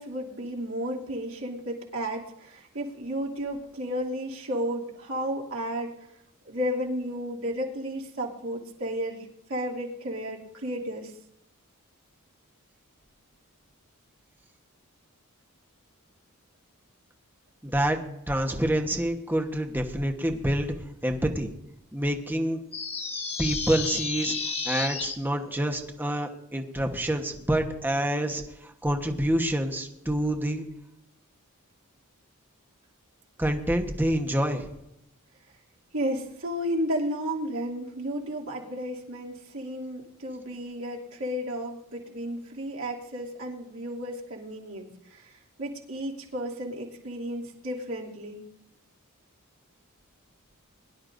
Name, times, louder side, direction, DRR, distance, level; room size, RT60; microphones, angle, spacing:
voice 1, 0.0-5.9 6.4-11.1 35.9-45.3 45.6-48.4, equal, 70° right, -2 dB, 2.8 m, -33 dB
voice 2, 17.6-18.0 18.3-20.7 21.0-21.5 21.9-22.6 23.4-24.3 24.6-30.6 33.4-34.7, right 1 dB, 10° right, 3 dB, 1.1 m, -27 dB
sound 1, 22.7-25.2, left 4 dB, 25° left, 1.4 m, -31 dB
22.5 x 11.5 x 2.6 m, 0.82 s
head